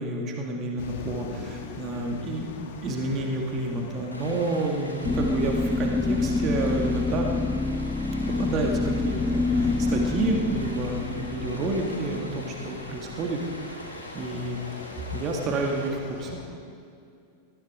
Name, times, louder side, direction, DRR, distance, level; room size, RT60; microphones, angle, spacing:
voice 1, 0.0-2.5 2.8-7.3 8.3-14.6 15.1-16.3, right 2 dB, 30° right, 1 dB, 2.1 m, -30 dB
sound 1, 0.8-16.5, left 5 dB, 55° left, 1.7 m, -42 dB
Stream, 4.1-15.9, equal, 85° left, 2.7 m, -42 dB
sound 2, 5.0-13.0, left 3 dB, 10° left, 0.5 m, -27 dB
20.0 x 14.5 x 5.0 m, 2.5 s
figure-of-eight pair, 90°, 0 cm